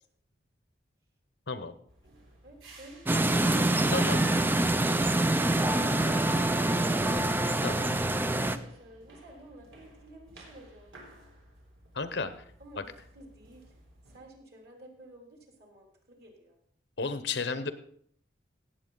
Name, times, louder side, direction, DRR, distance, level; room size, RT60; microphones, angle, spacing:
sound 1, 1.9-14.2, right 1 dB, 90° right, 3.7 m, -55 dB
voice 1, 2.4-3.4 8.3-10.9 12.6-13.6 14.1-16.6, right 1 dB, 55° right, 1 dB, 3.1 m, -52 dB
sound 2, 3.1-8.6, right 1 dB, 10° right, 0.4 m, -25 dB
voice 2, 11.9-12.3 17.0-17.7, left 4 dB, 60° left, 11 dB, 0.9 m, -32 dB
17.5 x 7.8 x 3.9 m, 0.63 s
head